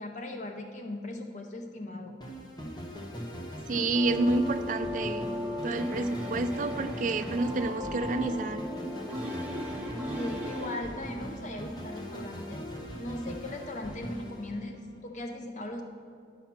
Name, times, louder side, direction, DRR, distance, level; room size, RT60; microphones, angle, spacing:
voice 1, 0.0-2.2 10.1-12.7 13.0-15.8, left 2 dB, 40° left, 4 dB, 0.5 m, -39 dB
sound 1, 2.2-15.1, equal, 20° left, 0.9 m, -40 dB
voice 2, 3.7-5.3 5.6-8.6, right 2 dB, 45° right, 8 dB, 0.4 m, -29 dB
sound 2, 3.9-10.8, left 1 dB, 5° right, 1.0 m, -37 dB
9.9 x 6.0 x 5.8 m, 2.4 s
head